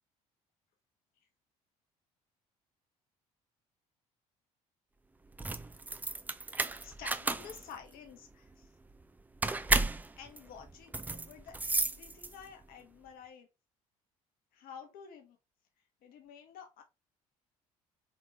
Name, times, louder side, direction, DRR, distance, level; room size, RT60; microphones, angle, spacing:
sound 1, 5.3-12.6, right 3 dB, 10° right, 0.3 m, -34 dB
voice 1, 6.8-8.7 10.2-13.5 14.5-15.4 16.0-16.8, left 7 dB, 55° left, 1.0 m, -51 dB
3.7 x 3.5 x 2.9 m
figure-of-eight pair, 55°, 18 cm